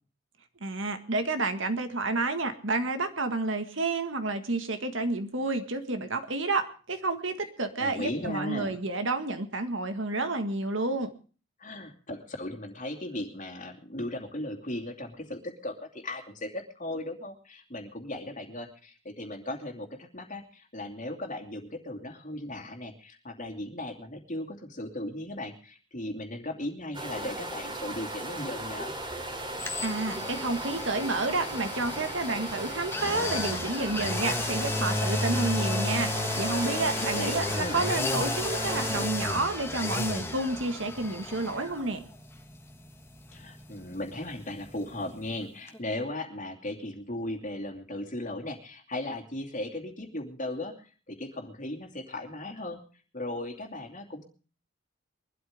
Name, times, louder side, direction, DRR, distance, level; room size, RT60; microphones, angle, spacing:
voice 1, 0.6-11.1 29.8-42.0, right 2 dB, 65° right, 8 dB, 1.8 m, -30 dB
voice 2, 7.8-8.8 11.6-28.9 37.1-37.8 43.3-52.8 53.1-54.2, left 1 dB, 40° left, 4 dB, 2.7 m, -37 dB
sound 1, 26.9-39.1, right 1 dB, 25° right, 3.2 m, -37 dB
sound 2, 29.6-45.4 45.7-45.8, left 2 dB, 10° left, 1.5 m, -33 dB
22.5 x 12.5 x 3.6 m, 0.38 s
head